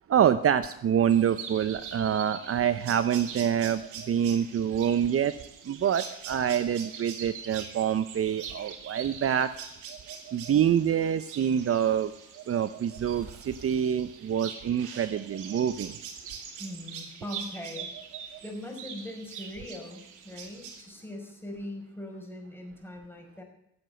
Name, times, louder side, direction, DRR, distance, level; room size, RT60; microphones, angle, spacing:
voice 1, 0.1-5.3 5.7-9.5 10.3-12.1 12.5-15.9, right 9 dB, 50° right, 13 dB, 0.8 m, -26 dB
sound 1, 1.1-20.8, right 7 dB, 90° right, 2.5 m, -43 dB
voice 2, 16.6-17.9 18.4-23.4, left 1 dB, 5° left, 1 dB, 5.1 m, -41 dB
16.0 x 7.8 x 8.1 m, 0.82 s
cardioid pair, 90°, 30 cm